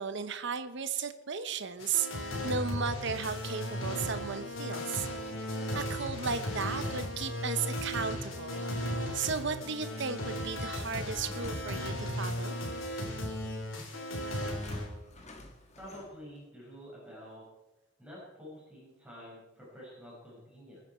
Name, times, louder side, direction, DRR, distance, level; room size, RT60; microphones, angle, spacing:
voice 1, 0.0-5.1 5.7-8.6 9.1-12.6, right 5 dB, 65° right, 10 dB, 0.9 m, -35 dB
sound 1, 1.8-14.9, left 1 dB, 85° left, 3.5 m, -36 dB
sound 2, 10.9-12.5 13.3-13.5 14.3-16.4, left 1 dB, 35° left, 2.0 m, -50 dB
voice 2, 15.8-17.4 18.0-20.8, equal, 5° right, -6 dB, 5.7 m, -48 dB
22.5 x 9.8 x 4.4 m, 1.0 s
head